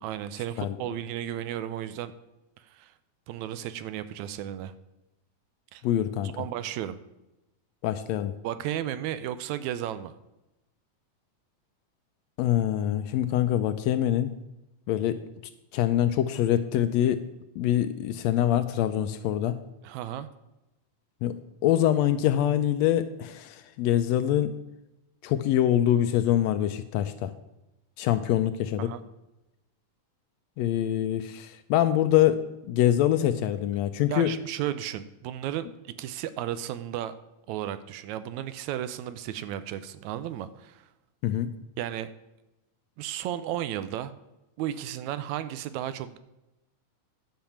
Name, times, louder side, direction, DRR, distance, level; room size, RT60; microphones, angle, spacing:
voice 1, 0.0-2.1 2.6-2.9 3.3-4.7 5.7-5.8 6.2-7.0 8.4-10.1 19.8-20.3 28.8-29.0 34.1-37.1 37.5-40.8 41.8-42.1 43.0-44.1 44.6-46.2, right 11 dB, 80° right, 13 dB, 1.8 m, -34 dB
voice 2, 5.8-6.3 7.8-8.3 12.4-14.3 14.9-15.2 15.7-17.2 17.6-19.6 21.2-21.4 21.6-24.5 25.2-27.3 28.0-28.9 30.6-32.4 32.7-34.3 41.2-41.5, left 11 dB, 80° left, 11 dB, 1.6 m, -24 dB
10.5 x 5.7 x 7.1 m, 0.94 s
omnidirectional pair, 3.4 m